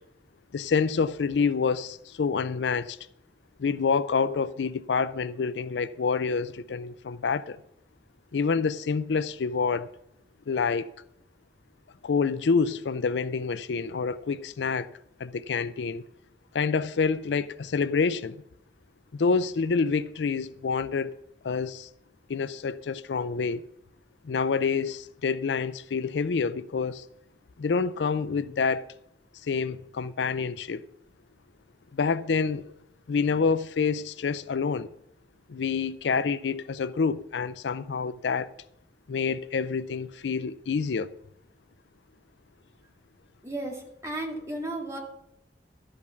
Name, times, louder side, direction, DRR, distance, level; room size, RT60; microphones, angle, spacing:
voice 1, 0.5-3.0 3.6-7.6 8.3-9.9 10.5-10.9 12.0-14.9 15.2-16.0 16.5-18.4 19.1-21.1 21.4-21.9 22.3-23.6 24.2-27.0 27.6-28.9 29.4-30.8 31.9-32.6 33.1-34.9 35.5-38.5 39.1-41.1, left 5 dB, 85° left, 0.4 m, -27 dB
voice 2, 43.4-45.0, right 1 dB, 15° right, 2.1 m, -34 dB
12.0 x 5.2 x 6.9 m
head